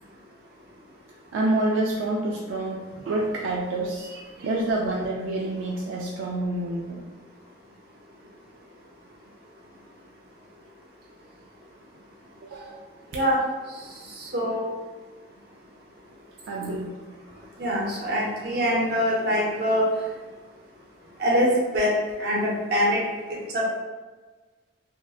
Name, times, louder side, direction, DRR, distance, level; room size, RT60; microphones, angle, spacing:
voice 1, 1.3-4.1 4.4-7.0 12.4-12.8 16.5-17.0, right 2 dB, 85° right, -2 dB, 0.3 m, -27 dB
voice 2, 14.2-14.6 17.6-19.9 21.2-21.9 22.2-23.0 23.5-23.7, equal, 60° right, -4 dB, 0.6 m, -23 dB
2.6 x 2.1 x 2.3 m, 1.3 s
head